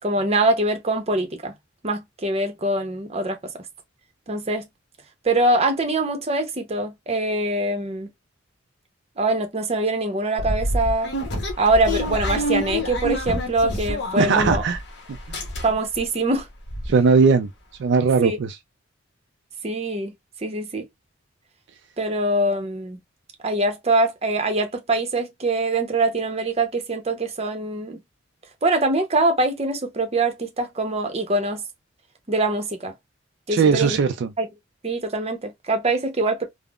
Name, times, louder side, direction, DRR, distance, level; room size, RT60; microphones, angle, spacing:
voice 1, 0.0-1.5 1.8-3.4 4.3-4.6 5.2-8.1 9.2-11.1 11.6-14.6 15.6-16.5 18.2-18.4 19.6-20.1 20.4-20.9 22.0-23.0 23.4-28.0 28.6-31.6 32.3-32.9 33.5-34.0 34.4-34.5 34.8-36.4, right 2 dB, 30° right, 0.7 m, -23 dB
sound 1, 10.4-14.9 15.1-16.0 16.4-16.5 16.7-16.9, equal, 60° left, 0.9 m, -27 dB
voice 2, 14.2-14.8 16.9-17.5 17.8-18.6 33.5-34.3, right 5 dB, 60° right, 0.3 m, -18 dB
3.5 x 2.0 x 2.3 m
head